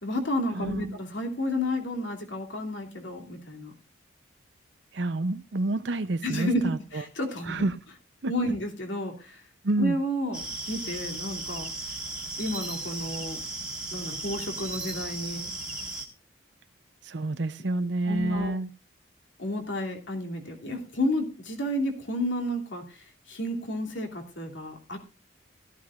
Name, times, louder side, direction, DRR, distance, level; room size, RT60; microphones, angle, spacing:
voice 1, 0.0-3.7 6.2-7.7 8.2-9.4 9.8-11.7 12.4-13.4 13.9-15.5 18.1-18.5 19.4-25.0, left 1 dB, 70° left, 2.8 m, -31 dB
voice 2, 0.5-1.0 4.9-7.0 7.5-7.8 8.2-8.3 9.6-10.0 17.0-18.7, right 2 dB, 60° right, 0.7 m, -28 dB
sound 1, 10.3-16.1, right 2 dB, 5° right, 1.9 m, -36 dB
16.5 x 12.5 x 2.5 m
head